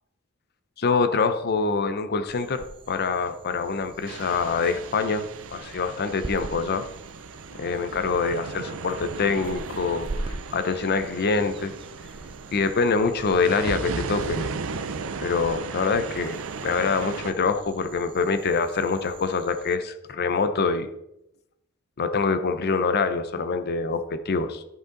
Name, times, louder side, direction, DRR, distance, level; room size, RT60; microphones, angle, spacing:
voice 1, 0.8-6.9 7.5-11.7 12.5-14.5 15.2-16.4 16.6-20.9 22.0-24.6, left 4 dB, 45° left, 10 dB, 0.6 m, -25 dB
sound 1, 2.3-19.8, right 2 dB, 25° right, 0.3 m, -43 dB
sound 2, 4.1-17.3, right 4 dB, 65° right, 0.6 m, -36 dB
11.0 x 5.3 x 3.8 m, 0.84 s
head